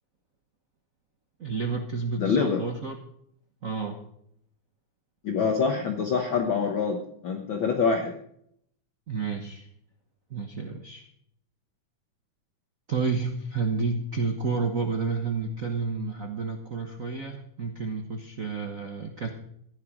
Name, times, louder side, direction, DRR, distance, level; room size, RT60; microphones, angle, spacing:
voice 1, 1.4-3.0 3.6-4.0 9.1-9.7 10.3-11.0 12.9-19.3, right 4 dB, 85° right, 4 dB, 0.7 m, -30 dB
voice 2, 2.2-2.6 5.2-8.1, left 5 dB, 55° left, 3 dB, 1.5 m, -25 dB
15.0 x 10.5 x 5.0 m, 0.70 s
omnidirectional pair, 3.4 m